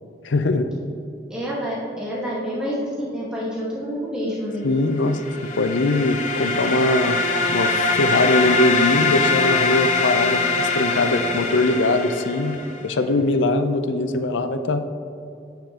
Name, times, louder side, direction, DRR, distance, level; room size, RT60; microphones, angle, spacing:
voice 1, 0.2-0.7 4.6-5.2 5.5-7.2 7.5-14.8, left 2 dB, 85° left, 8 dB, 0.5 m, -21 dB
voice 2, 1.3-4.6, equal, 5° right, -8 dB, 1.4 m, -28 dB
sound 1, 5.1-12.8, left 3 dB, 45° left, 0.7 m, -23 dB
9.1 x 7.6 x 2.9 m, 2.6 s
head